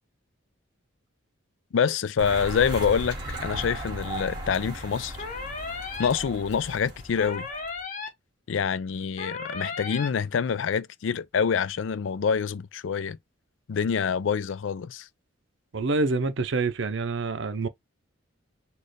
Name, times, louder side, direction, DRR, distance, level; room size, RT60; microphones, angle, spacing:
voice 1, 1.7-5.2 6.0-7.5 8.5-13.2 13.7-15.1, left 6 dB, 70° left, 0.4 m, -26 dB
sound 1, 2.2-7.8, right 1 dB, 25° right, 1.9 m, -37 dB
sound 2, 5.2-6.1 7.2-8.1 9.2-10.1, left 4 dB, 40° left, 1.1 m, -35 dB
voice 2, 15.7-17.7, right 3 dB, 60° right, 0.6 m, -26 dB
4.2 x 2.4 x 3.2 m
head